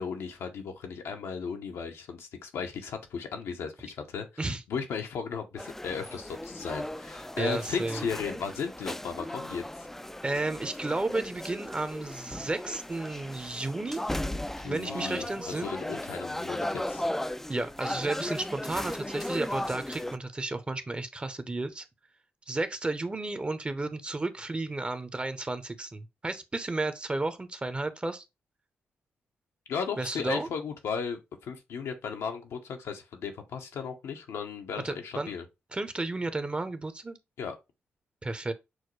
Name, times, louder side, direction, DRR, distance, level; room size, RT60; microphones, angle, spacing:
voice 1, 0.0-9.9 14.6-17.1 29.7-35.4 37.4-37.5, left 6 dB, 85° left, 0.8 m, -36 dB
sound 1, 5.6-20.2, left 1 dB, 5° left, 0.3 m, -36 dB
voice 2, 7.4-8.0 10.2-14.0 14.6-15.7 17.5-21.9 22.5-28.2 30.0-30.5 34.8-35.3 35.7-37.2 38.2-38.5, right 2 dB, 25° right, 0.7 m, -32 dB
6.2 x 2.2 x 3.1 m
cardioid pair, 65°, 4 cm